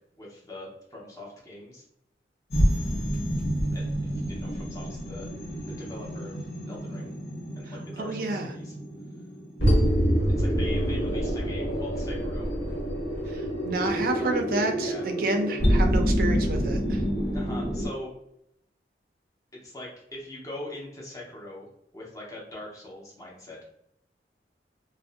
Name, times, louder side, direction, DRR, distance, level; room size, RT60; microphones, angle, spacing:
voice 1, 0.2-1.8 3.7-3.9 4.3-5.3 5.7-6.4 6.7-7.1 7.5-8.7 10.4-12.5 14.2-14.4 14.8-15.0 17.3-18.1 19.5-21.7 21.9-23.7, left 1 dB, 20° left, -4 dB, 0.7 m, -42 dB
sound 1, 2.5-17.9, equal, 75° left, 1.1 m, -27 dB
voice 2, 7.7-8.6 9.6-10.0 13.3-17.0, right 2 dB, 50° right, 4 dB, 0.4 m, -30 dB
2.5 x 2.0 x 2.5 m, 0.78 s
head